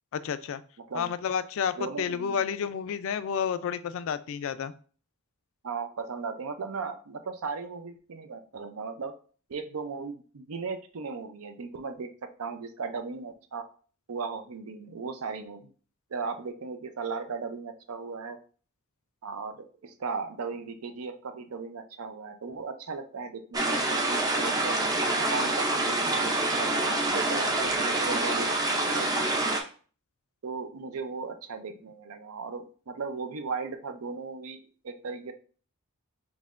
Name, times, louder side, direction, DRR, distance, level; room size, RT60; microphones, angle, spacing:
voice 1, 0.1-0.6 0.9-4.7, left 7 dB, 60° left, 13 dB, 0.3 m, -30 dB
voice 2, 0.8-1.1 1.8-2.4 5.6-9.2 9.5-13.7 14.1-15.7 16.1-18.4 19.2-24.8 25.3-29.4 30.4-35.3, right 4 dB, 75° right, 8 dB, 0.5 m, -37 dB
sound 1, 23.5-29.6, right 2 dB, 15° right, 0.5 m, -26 dB
5.4 x 3.0 x 2.5 m, 0.41 s
head